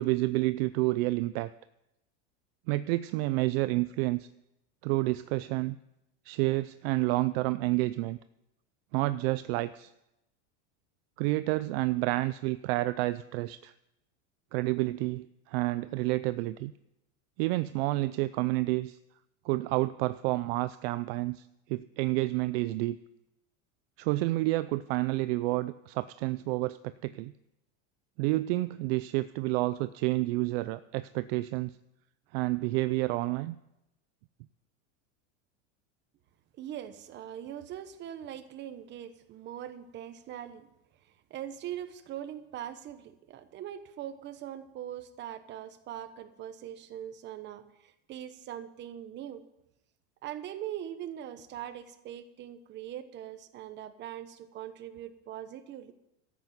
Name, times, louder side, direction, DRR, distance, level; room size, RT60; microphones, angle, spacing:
voice 1, 0.0-1.5 2.7-4.3 4.8-5.8 6.3-8.2 8.9-9.9 11.2-13.7 14.5-16.7 17.4-19.0 19.4-23.0 24.0-27.3 28.2-31.7 32.3-33.6, right 19 dB, 55° right, 14 dB, 0.5 m, -29 dB
voice 2, 36.6-40.7 41.0-49.4 50.2-55.9, right 11 dB, 30° right, 11 dB, 1.0 m, -41 dB
13.0 x 8.3 x 7.8 m, 0.88 s
supercardioid pair, 155°, 36 cm